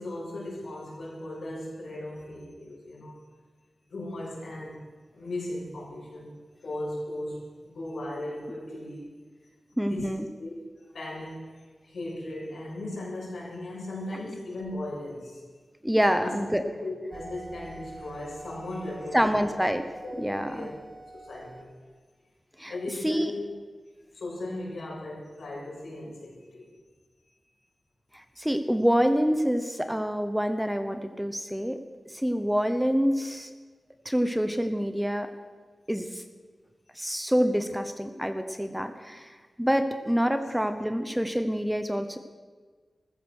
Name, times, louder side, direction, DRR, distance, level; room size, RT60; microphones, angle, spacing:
voice 1, 0.0-3.2 3.9-4.8 5.1-6.3 6.6-9.1 9.7-10.1 10.4-11.6 11.8-15.4 16.2-19.5 20.0-20.8 21.1-21.9 22.7-23.5 24.1-26.7, left 1 dB, 80° left, -4 dB, 6.7 m, -37 dB
voice 2, 9.8-10.2 15.8-16.6 19.1-19.9 20.2-20.7 22.6-22.7 23.0-23.3 28.1-31.8 32.1-33.5 34.0-35.3 35.9-36.2 37.0-42.2, equal, 5° right, 8 dB, 0.9 m, -26 dB
sound 1, 17.1-21.6, right 2 dB, 55° right, 4.2 m, -46 dB
15.0 x 14.0 x 6.5 m, 1.4 s
wide cardioid pair, 95°, 0 cm